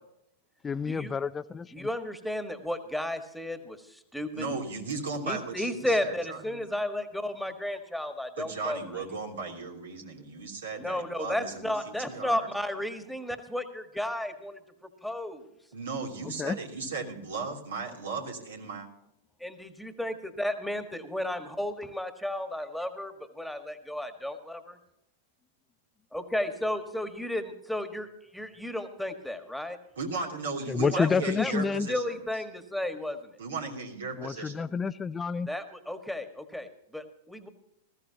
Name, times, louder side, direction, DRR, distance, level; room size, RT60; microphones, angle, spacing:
voice 1, 0.6-1.9 16.2-16.6 30.7-31.9 34.2-35.5, left 5 dB, 20° left, 13 dB, 0.4 m, -29 dB
voice 2, 1.7-4.5 5.2-8.8 10.8-14.6 15.0-15.4 19.4-24.8 26.1-28.1 28.3-29.8 31.0-31.1 31.4-33.3 35.5-37.5, left 1 dB, ahead, 7 dB, 1.6 m, -33 dB
voice 3, 4.3-6.6 8.4-12.5 15.7-18.9 30.0-32.2 33.4-34.5, right 4 dB, 80° right, 1 dB, 3.0 m, -36 dB
19.5 x 14.5 x 2.9 m, 0.81 s
hypercardioid pair, 100°, 0 cm